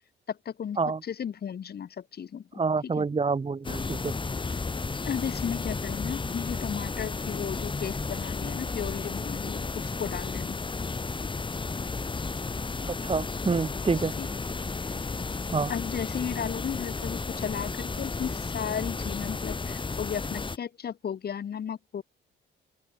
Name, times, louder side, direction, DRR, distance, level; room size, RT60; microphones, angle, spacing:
voice 1, 0.3-2.4 2.8-3.0 5.1-10.6 14.2-14.3 14.8-14.9 15.7-22.0, left 8 dB, 50° left, 2.5 m, -35 dB
voice 2, 2.6-4.1 13.0-14.1 15.5-15.7, right 4 dB, 30° right, 2.0 m, -27 dB
sound 1, 3.6-20.6, left 4 dB, 25° left, 2.3 m, -33 dB
open air
cardioid pair, 90°, 20 cm